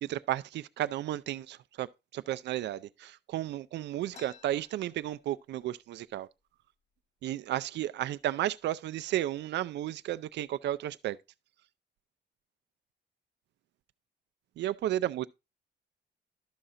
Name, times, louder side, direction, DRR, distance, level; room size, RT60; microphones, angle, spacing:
voice 1, 0.0-6.3 7.2-11.2 14.6-15.3, right 13 dB, 75° right, 0.5 m, -33 dB
sound 1, 4.1-5.7 6.1-6.2 6.4-7.0 7.6-7.8 8.5-8.7 9.1-9.6, left 6 dB, 35° left, 1.1 m, -56 dB
12.5 x 5.7 x 3.7 m
wide cardioid pair, 175°, 18 cm